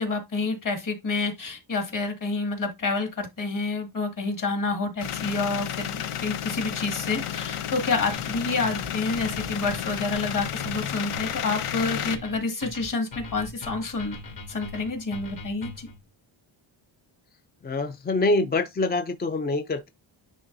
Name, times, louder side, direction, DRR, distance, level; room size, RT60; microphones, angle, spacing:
voice 1, 0.0-14.2 14.5-15.9, left 3 dB, 40° left, 2.0 m, -28 dB
sound 1, 5.0-12.2, left 10 dB, 85° left, 0.9 m, -32 dB
sound 2, 8.1-16.0, left 2 dB, 55° left, 3.3 m, -41 dB
voice 2, 17.6-19.9, left 2 dB, 20° left, 0.3 m, -25 dB
9.9 x 3.8 x 2.6 m
wide cardioid pair, 135°, 49 cm